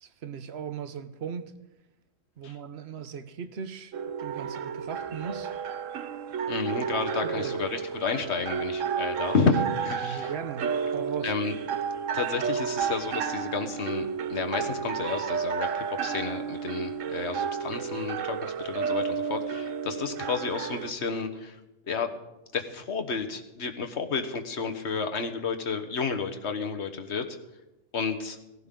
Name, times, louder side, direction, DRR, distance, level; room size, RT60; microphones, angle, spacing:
voice 1, 0.0-1.5 2.4-5.5 7.2-7.6 10.0-11.3, right 7 dB, 60° right, 1.1 m, -38 dB
sound 1, 3.9-20.9, right 7 dB, 85° right, 1.1 m, -32 dB
voice 2, 6.5-10.3 11.2-11.5 12.1-21.6 21.8-22.1 22.5-27.2 27.9-28.4, left 5 dB, 60° left, 1.5 m, -31 dB
18.0 x 16.0 x 3.8 m
omnidirectional pair, 1.3 m